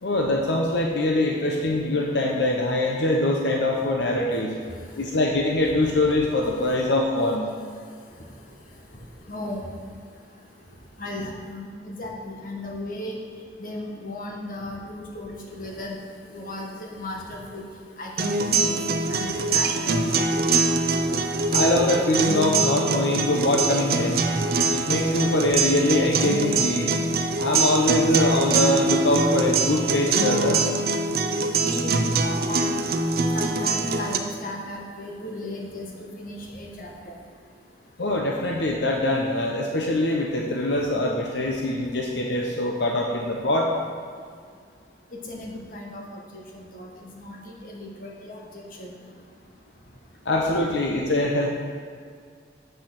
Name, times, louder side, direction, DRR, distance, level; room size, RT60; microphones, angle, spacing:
voice 1, 0.0-4.5 5.0-7.5 21.5-24.2 24.7-26.9 27.4-30.6 38.0-43.7 50.3-51.5, left 1 dB, 80° left, 0 dB, 0.9 m, -23 dB
voice 2, 9.3-9.7 11.0-13.2 13.6-16.0 16.3-17.6 18.0-20.3 31.6-32.8 33.3-37.2 45.1-48.9, left 1 dB, 50° left, -1 dB, 1.5 m, -36 dB
sound 1, 18.2-34.2, right 3 dB, 55° right, 0.6 m, -23 dB
7.9 x 6.5 x 6.1 m, 2.1 s
head